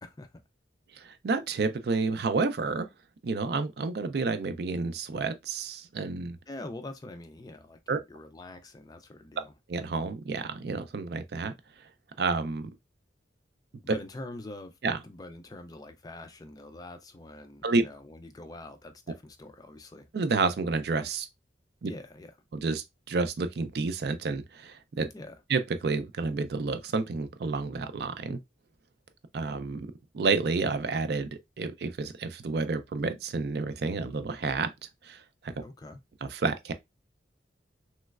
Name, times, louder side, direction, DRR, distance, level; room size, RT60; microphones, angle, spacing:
voice 1, 1.0-2.9 3.2-6.4 7.9-8.0 9.7-11.5 12.2-12.7 13.9-14.0 14.8-15.0 17.6-17.8 20.1-21.3 21.8-21.9 22.5-25.1 25.5-28.4 29.3-29.9 30.1-31.3 31.6-34.7 35.1-35.2 35.4-35.5 36.2-36.7, right 4 dB, 55° right, 0.4 m, -30 dB
voice 2, 6.5-9.5 13.8-14.8 15.0-20.1 21.8-22.3 25.1-25.4 35.6-36.0, left 2 dB, 20° left, 0.3 m, -44 dB
3.1 x 3.1 x 2.3 m
head